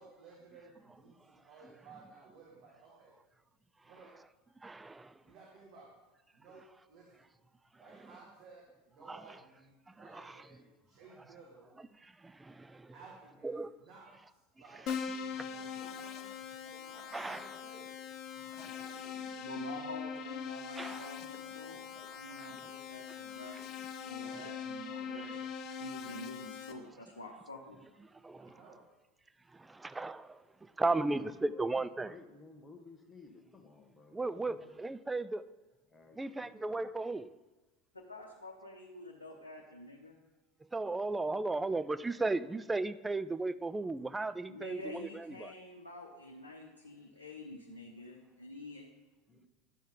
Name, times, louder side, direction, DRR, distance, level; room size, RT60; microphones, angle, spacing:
voice 1, 0.0-3.1 3.8-4.2 5.2-6.0 6.3-7.2 7.8-11.7 12.9-16.3 17.1-17.9 28.4-28.8, right 4 dB, 50° right, -3 dB, 1.7 m, -57 dB
voice 2, 4.6-5.1 9.1-9.2 10.0-10.4 12.2-12.9 13.4-13.7 15.3-15.5 16.9-17.5 18.6-19.1 20.8-21.1 22.6-22.7 23.5-23.6 24.4-24.5 25.2-25.3 28.2-28.6 29.5-32.1 34.1-35.4 36.2-37.3 40.7-45.5, right 3 dB, 10° right, 15 dB, 0.3 m, -36 dB
Keyboard (musical), 14.9-26.7, left 7 dB, 40° left, 0.7 m, -42 dB
voice 3, 19.1-21.8 22.2-28.0 37.9-40.2 44.5-48.9, left 2 dB, 80° left, 0 dB, 0.8 m, -48 dB
voice 4, 31.1-34.8 35.9-36.9 49.3-49.4, left 3 dB, 15° left, 4 dB, 1.2 m, -56 dB
10.5 x 7.1 x 3.8 m, 1.1 s
figure-of-eight pair, 75°, 0 cm